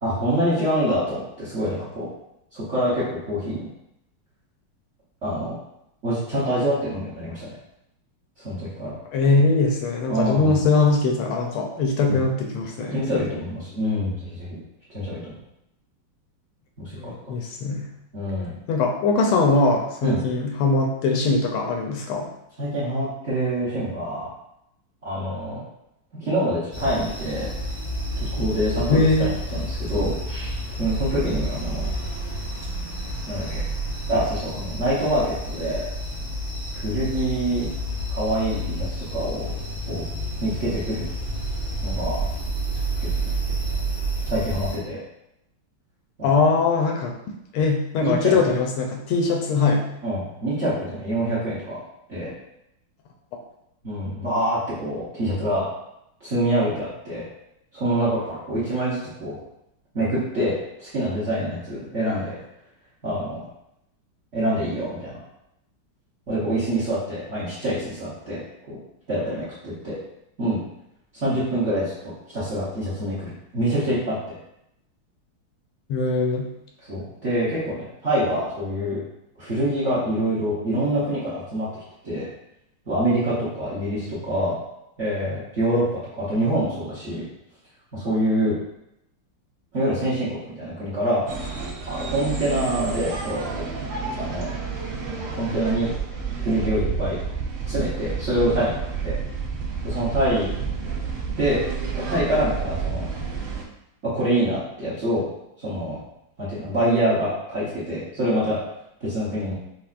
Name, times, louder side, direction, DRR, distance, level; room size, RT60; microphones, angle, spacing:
voice 1, 0.0-2.1 2.5-3.7 5.2-5.5 6.0-7.5 8.4-9.0 10.1-10.6 12.1-12.2 12.9-14.6 14.9-15.4 16.8-17.1 18.1-18.6 20.0-20.2 22.6-24.3 25.0-25.7 26.2-27.5 28.2-31.9 33.3-33.6 34.1-35.9 36.7-37.7 38.1-39.5 39.9-40.0 40.4-41.1 41.8-42.3 43.0-43.3 44.3-45.0 48.0-48.3 50.0-51.8 52.1-52.3 53.8-55.6 56.2-57.3 57.7-59.4 59.9-62.4 63.0-63.4 64.3-65.2 66.3-68.4 68.7-68.8 69.1-70.0 70.4-70.6 71.2-74.3 76.9-77.8 78.0-79.0 79.4-81.7 82.0-82.3 82.9-84.6 85.0-87.2 87.9-88.5 89.7-91.2 91.9-93.6 94.2-94.5 95.3-95.9 96.4-97.4 97.7-98.8 99.0-99.1 99.8-100.5 101.4-101.6 102.1-103.1 104.0-105.3 105.6-106.0 106.4-108.6 109.0-109.5, right 1 dB, 45° right, -10 dB, 1.0 m, -25 dB
voice 2, 9.1-13.2 17.0-17.9 18.7-22.3 28.9-29.3 46.2-47.1 47.5-49.8 75.9-76.5, left 3 dB, 80° left, 1 dB, 1.4 m, -21 dB
sound 1, 26.7-44.8, right 1 dB, 5° right, 0.7 m, -29 dB
sound 2, 91.3-103.6, right 5 dB, 75° right, 1.4 m, -30 dB
5.6 x 2.1 x 2.4 m, 0.81 s
omnidirectional pair, 2.4 m